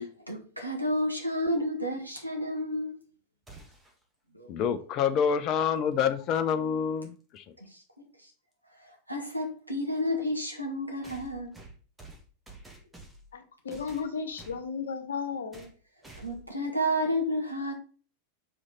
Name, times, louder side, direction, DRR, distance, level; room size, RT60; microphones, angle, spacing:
voice 1, 0.3-2.9 4.3-4.5 7.7-8.0 8.8-11.5 16.2-17.7, equal, 90° right, 1.6 m, -31 dB
sound 1, 3.5-4.0 6.1-6.2 7.4-7.5 11.0-13.4 13.7-14.6 15.5-15.8 16.0-16.5, right 2 dB, 10° right, 1.6 m, -49 dB
voice 2, 4.5-7.4, left 7 dB, 35° left, 0.6 m, -27 dB
voice 3, 13.3-15.7, left 5 dB, 65° left, 1.1 m, -34 dB
5.5 x 4.9 x 4.2 m
figure-of-eight pair, 90°, 0 cm